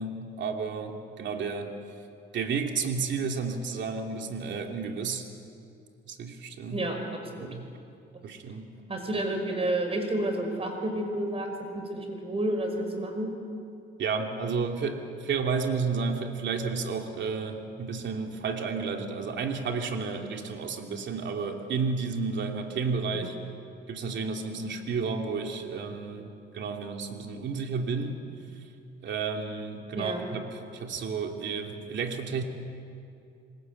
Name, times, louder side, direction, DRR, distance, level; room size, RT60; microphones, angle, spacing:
voice 1, 0.0-1.8 2.3-5.3 6.1-6.8 7.4-7.7 8.2-8.7 14.0-23.4 23.9-28.2 29.0-32.4, right 5 dB, 65° right, 3 dB, 2.8 m, -32 dB
voice 2, 6.7-7.5 8.9-13.3 23.1-23.4 29.9-30.2, right 1 dB, 30° right, 4 dB, 5.5 m, -30 dB
27.0 x 20.0 x 8.3 m, 2.5 s
cardioid pair, 90°, 20 cm